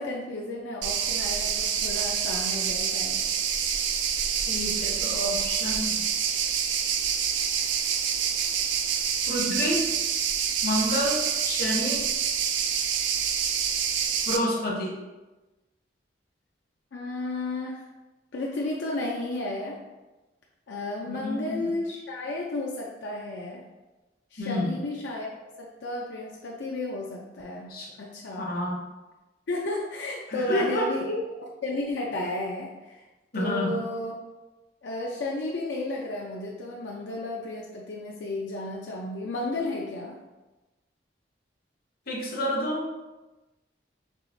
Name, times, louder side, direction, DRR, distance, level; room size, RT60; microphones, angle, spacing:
voice 1, 0.0-3.2 16.9-17.8 18.3-19.8 20.7-23.6 24.3-25.3 25.6-28.5 29.5-33.1 33.3-34.2 34.8-40.2, left 2 dB, 80° left, -3 dB, 0.5 m, -33 dB
sound 1, 0.8-14.4, right 7 dB, 85° right, 0.3 m, -27 dB
voice 2, 4.5-6.0 9.3-9.9 10.6-12.1 14.2-14.9 21.1-21.7 24.4-24.8 27.7-27.9 28.4-28.8 30.3-30.9 33.3-33.8 42.1-42.8, left 1 dB, 55° left, -2 dB, 0.8 m, -29 dB
4.7 x 2.8 x 2.6 m, 1.1 s
head